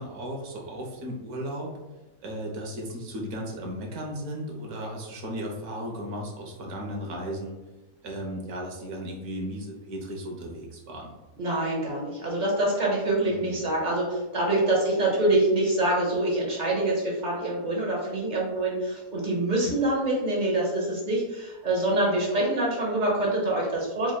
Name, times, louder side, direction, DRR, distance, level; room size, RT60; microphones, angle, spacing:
voice 1, 0.0-1.7 2.2-7.6 8.0-11.1 13.3-13.6, equal, 65° right, 0 dB, 1.2 m, -35 dB
voice 2, 11.4-24.1, right 1 dB, 35° right, -3 dB, 0.8 m, -25 dB
4.5 x 3.0 x 2.2 m, 1.1 s
omnidirectional pair, 1.7 m